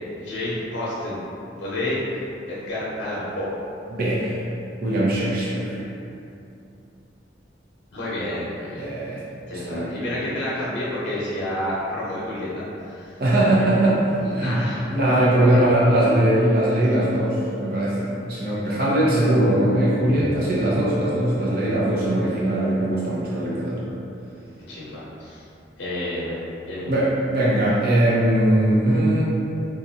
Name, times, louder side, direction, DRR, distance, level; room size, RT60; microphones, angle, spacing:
voice 1, 0.2-1.3 1.6-2.0 2.5-3.5 7.9-8.9 9.5-13.2 13.5-13.9 14.2-14.9 15.4-15.6 20.1-20.2 24.7-25.4 25.8-26.4 26.7-27.0, left 1 dB, 80° left, -8 dB, 0.7 m, -30 dB
voice 2, 3.9-4.4 4.8-5.8 8.8-9.2 9.5-9.9 13.2-14.0 14.3-14.6 14.9-23.9 26.9-29.2, right 1 dB, 50° right, -7 dB, 0.6 m, -20 dB
4.0 x 2.4 x 2.7 m, 2.7 s
head